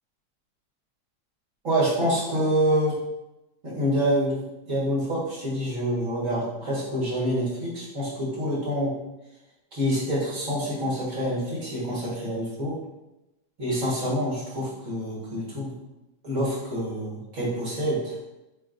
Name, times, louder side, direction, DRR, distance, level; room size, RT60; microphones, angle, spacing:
voice 1, 1.6-3.0 3.6-4.4 4.7-8.9 9.7-12.8 13.6-15.7 16.2-18.2, equal, 50° right, -7 dB, 1.8 m, -26 dB
7.3 x 2.5 x 2.5 m, 0.95 s
omnidirectional pair, 1.7 m